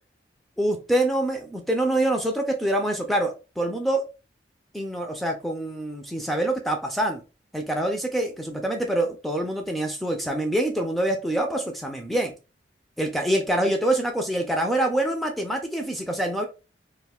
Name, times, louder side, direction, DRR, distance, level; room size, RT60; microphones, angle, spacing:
voice 1, 0.6-4.0 4.7-7.2 7.5-12.3 13.0-16.5, right 1 dB, ahead, 3 dB, 0.3 m, -25 dB
2.4 x 2.3 x 3.4 m, 0.31 s
head